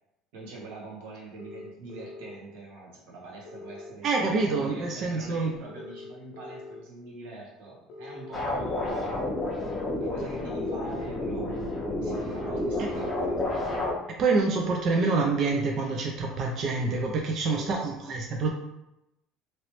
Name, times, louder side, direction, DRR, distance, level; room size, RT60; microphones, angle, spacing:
voice 1, 0.3-4.1 4.4-9.1 10.0-13.4 17.3-18.1, right 2 dB, 90° right, -3 dB, 1.2 m, -44 dB
sound 1, 1.4-2.4 3.4-4.6 5.7-6.8 7.9-9.0 10.1-11.2 12.3-13.5 14.6-15.7 16.8-17.9, left 2 dB, 60° left, 0.5 m, -43 dB
voice 2, 4.0-5.5 12.8-12.9 14.2-18.5, right 3 dB, 35° right, 1 dB, 0.3 m, -26 dB
sound 2, 8.3-13.9, left 1 dB, 15° left, 0.6 m, -30 dB
3.1 x 2.9 x 3.0 m, 0.90 s
cardioid pair, 165°, 0 cm